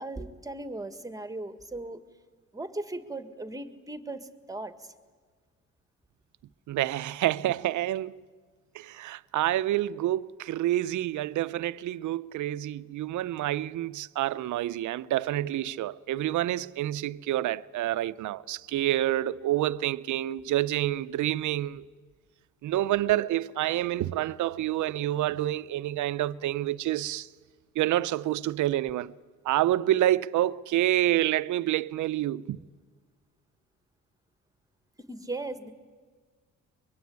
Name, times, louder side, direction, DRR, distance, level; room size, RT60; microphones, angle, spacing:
voice 1, 0.0-2.0 2.5-4.9 35.1-35.7, right 2 dB, 10° right, 1.8 m, -37 dB
voice 2, 6.7-8.2 8.7-21.8 22.6-27.3 27.7-29.1 29.4-32.6, right 14 dB, 75° right, 0.7 m, -28 dB
24.0 x 22.0 x 9.5 m
cardioid pair, 90°, 30 cm